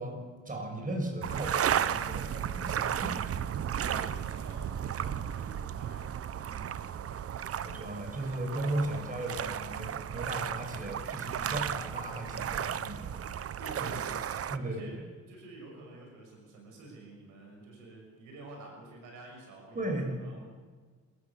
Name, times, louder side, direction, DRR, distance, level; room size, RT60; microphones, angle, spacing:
voice 1, 0.0-3.3 7.6-13.4 13.8-14.0 14.5-14.8 19.7-20.1, right 1 dB, 25° right, 2 dB, 6.4 m, -36 dB
sound 1, 1.2-14.6, right 9 dB, 50° right, 0.8 m, -34 dB
voice 2, 3.8-6.2 6.4-7.1 13.5-15.0 15.3-20.4, right 2 dB, 85° right, 1 dB, 6.4 m, -49 dB
27.5 x 15.0 x 7.3 m, 1.5 s
cardioid pair, 90°, 30 cm